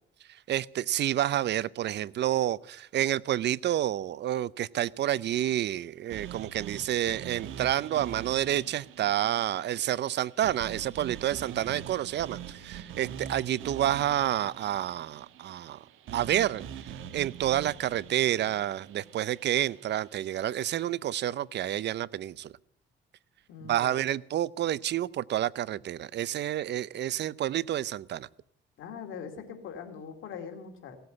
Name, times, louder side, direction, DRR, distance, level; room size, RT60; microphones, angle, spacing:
voice 1, 0.5-15.8 16.1-22.5 23.6-28.3, right 12 dB, 60° right, 22 dB, 0.5 m, -29 dB
sound 1, 6.1-20.3, right 9 dB, 85° right, 1.3 m, -44 dB
voice 2, 23.5-24.0 28.8-31.0, left 6 dB, 85° left, 5 dB, 2.3 m, -42 dB
17.0 x 7.9 x 9.4 m, 0.76 s
cardioid pair, 90°, 20 cm